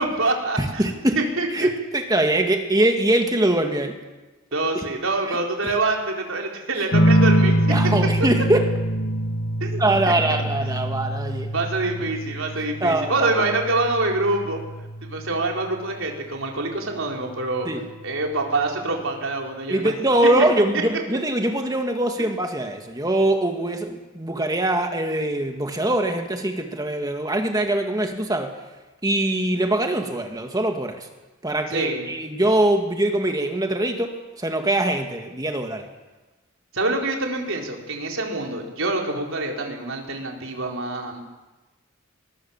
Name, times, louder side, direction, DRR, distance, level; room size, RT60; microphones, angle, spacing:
voice 1, 0.0-0.8 1.2-1.7 4.5-7.6 9.6-10.1 11.5-14.6 15.0-17.7 18.0-19.9 22.2-22.3 31.7-32.1 36.7-41.2, right 2 dB, 65° right, 1 dB, 4.3 m, -25 dB
voice 2, 0.6-1.2 1.5-4.0 4.7-4.8 5.3-5.4 7.7-8.6 9.8-11.5 12.8-13.5 17.7-17.8 19.7-28.5 29.0-31.1 31.4-35.9, right 1 dB, 15° right, 4 dB, 2.1 m, -23 dB
sound 1, 6.9-16.0 17.4-18.0, right 1 dB, 65° left, 1.6 m, -24 dB
23.5 x 21.0 x 7.3 m, 1.1 s
head